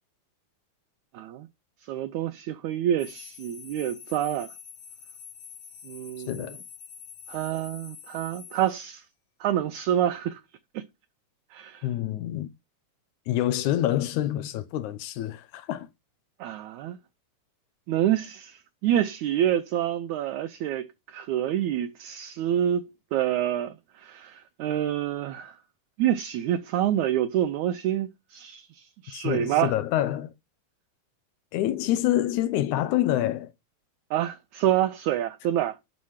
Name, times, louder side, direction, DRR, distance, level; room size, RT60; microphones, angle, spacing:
voice 1, 1.1-1.5 1.9-4.5 5.8-6.5 7.3-9.0 9.4-10.4 10.7-10.8 11.5-11.9 16.4-17.0 17.9-25.6 26.0-29.7 34.1-35.8, right 11 dB, 75° right, 1.9 m, -27 dB
sound 1, 3.0-8.7, left 8 dB, 55° left, 2.3 m, -46 dB
voice 2, 6.3-6.6 11.8-12.5 13.3-15.9 29.1-30.3 31.5-33.5, left 13 dB, 75° left, 2.0 m, -27 dB
9.6 x 5.8 x 4.9 m
omnidirectional pair, 3.8 m